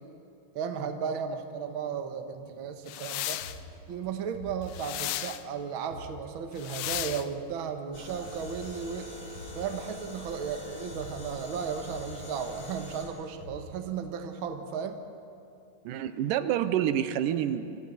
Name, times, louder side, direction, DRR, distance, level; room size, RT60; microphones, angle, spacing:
voice 1, 0.5-3.4 3.9-9.1 9.5-15.0, right 7 dB, 55° right, 6 dB, 1.4 m, -35 dB
sound 1, 2.9-3.6 4.7-5.4 6.6-7.3, left 15 dB, 90° left, 2.4 m, -34 dB
sound 2, 2.9-4.9 5.3-5.4 5.7-6.2 6.5-6.6 6.8-7.3 8.1-10.0 10.4-10.5 10.8-11.2 11.5-14.0, equal, 40° left, 3.3 m, -48 dB
sound 3, 7.9-13.1, left 2 dB, 25° left, 4.7 m, -44 dB
voice 2, 15.9-17.8, right 10 dB, 80° right, 11 dB, 2.2 m, -28 dB
28.5 x 25.5 x 4.1 m, 2.6 s
omnidirectional pair, 3.9 m